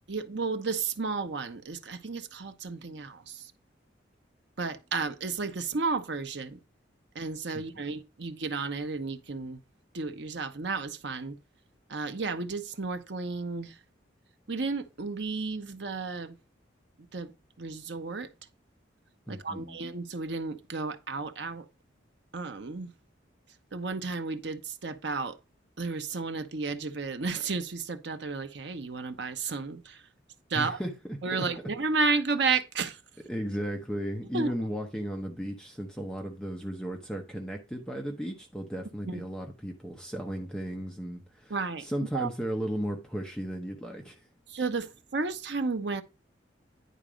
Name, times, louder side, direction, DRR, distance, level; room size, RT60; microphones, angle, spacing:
voice 1, 0.1-3.5 4.6-6.6 7.1-9.6 9.9-11.4 11.9-13.7 14.5-16.3 17.1-17.3 17.6-18.3 19.3-21.6 22.3-22.9 23.7-25.4 25.8-30.0 30.5-30.8 31.2-33.0 34.3-34.5 39.1-39.2 41.5-41.8 42.1-42.3 44.5-46.0, right 4 dB, 65° right, 0.8 m, -32 dB
voice 2, 19.3-19.8 30.5-31.5 33.3-44.2, equal, 5° left, 0.9 m, -35 dB
10.0 x 4.0 x 5.0 m
head